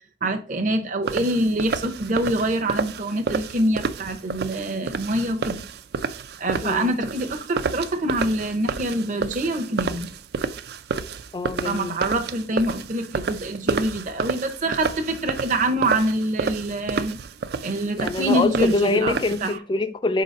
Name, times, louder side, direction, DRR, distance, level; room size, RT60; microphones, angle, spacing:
voice 1, 0.2-5.6 6.4-10.1 11.6-17.2 17.6-19.6, right 1 dB, 45° right, 0.8 m, -25 dB
sound 1, 1.1-19.5, right 5 dB, 60° right, 0.4 m, -30 dB
voice 2, 6.6-6.9 11.3-12.0 18.0-20.2, left 3 dB, 25° left, 0.4 m, -24 dB
4.9 x 3.9 x 5.2 m
head